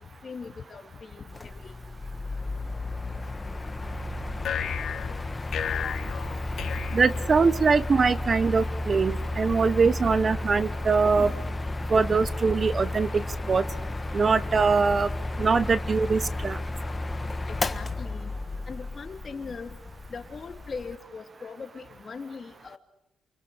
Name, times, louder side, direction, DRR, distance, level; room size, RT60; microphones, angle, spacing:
voice 1, 0.2-1.8 5.0-5.1 5.7-6.0 11.1-11.5 17.5-18.3 18.7-19.7 20.1-22.8, left 5 dB, 45° left, 6 dB, 3.2 m, -40 dB
Mechanical fan, 1.3-21.0, left 2 dB, 20° left, 1.6 m, -33 dB
sound 1, 4.4-7.8, left 8 dB, 70° left, 3.4 m, -34 dB
voice 2, 6.9-11.3 11.9-13.2 13.5-13.6 14.1-15.1 15.4-16.6, right 4 dB, 40° right, 16 dB, 1.0 m, -22 dB
29.0 x 27.5 x 6.7 m, 0.82 s
cardioid pair, 85°, 0 cm